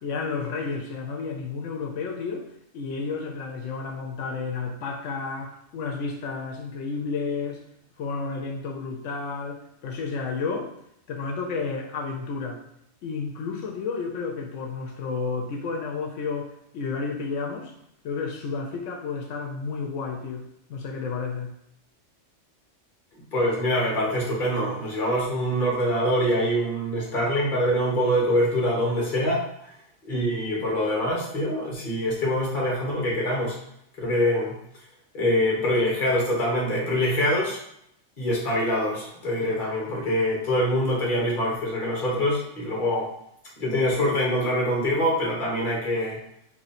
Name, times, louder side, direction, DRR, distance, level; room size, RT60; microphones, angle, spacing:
voice 1, 0.0-2.5 2.7-7.6 8.0-10.7 11.1-12.6 13.0-17.7 18.0-21.5, left 4 dB, 90° left, 1 dB, 0.9 m, -31 dB
voice 2, 23.3-29.4 30.0-33.6 34.0-34.5 35.1-37.6 38.2-43.1 43.6-46.2, equal, 45° left, -3 dB, 1.2 m, -24 dB
2.8 x 2.6 x 4.0 m, 0.74 s
omnidirectional pair, 1.2 m